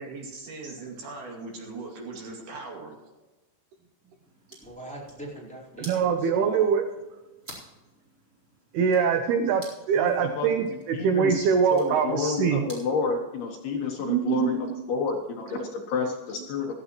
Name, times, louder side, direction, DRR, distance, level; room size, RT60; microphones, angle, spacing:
voice 1, 0.0-2.9, right 3 dB, 55° right, 0 dB, 4.0 m, -39 dB
sound 1, 4.2-13.0, right 1 dB, 15° right, 3.9 m, -51 dB
voice 2, 4.6-6.7, right 1 dB, ahead, -4 dB, 3.5 m, -41 dB
voice 3, 5.8-6.8 8.7-12.6 14.0-14.8 15.5-15.7, right 7 dB, 80° right, 6 dB, 2.3 m, -24 dB
voice 4, 10.0-10.5 10.9-11.3 11.7-14.6 14.9-16.7, left 5 dB, 65° left, 1 dB, 2.8 m, -30 dB
16.0 x 14.0 x 3.1 m, 1.1 s
omnidirectional pair, 5.6 m